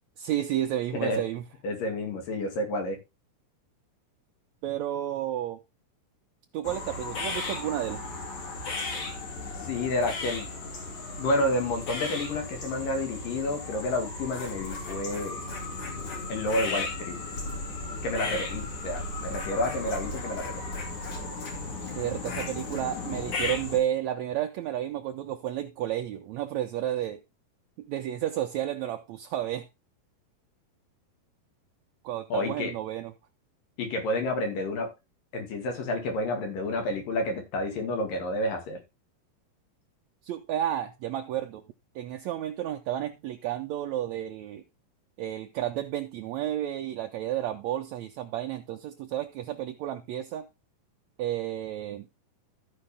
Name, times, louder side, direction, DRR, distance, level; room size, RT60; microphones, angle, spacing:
voice 1, 0.2-1.4 4.6-5.6 6.5-8.0 22.0-27.2 27.8-29.7 32.0-33.1 40.2-41.6 42.0-44.6 45.2-50.5 51.2-52.1, right 12 dB, 75° right, 1.7 m, -31 dB
voice 2, 1.6-3.0 9.6-10.5 11.2-15.4 16.3-17.2 18.0-20.7 32.3-32.7 33.8-34.9 35.3-38.8, left 1 dB, 75° left, 4.0 m, -30 dB
sound 1, 6.6-23.8, left 3 dB, 60° left, 3.9 m, -35 dB
14.0 x 5.1 x 3.5 m
omnidirectional pair, 3.9 m